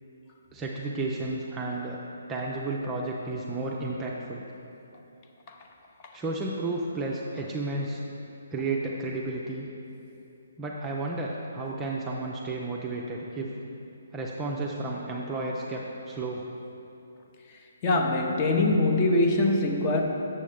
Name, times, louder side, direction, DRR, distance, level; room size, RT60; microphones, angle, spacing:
voice 1, 0.5-2.0 2.3-4.4 6.1-8.0 8.5-9.7 10.6-13.5 14.1-16.4, right 2 dB, 15° right, -3 dB, 0.5 m, -32 dB
voice 2, 17.8-20.0, left 2 dB, 25° left, 1 dB, 0.7 m, -23 dB
7.3 x 6.9 x 3.5 m, 2.8 s
figure-of-eight pair, 140°, 0 cm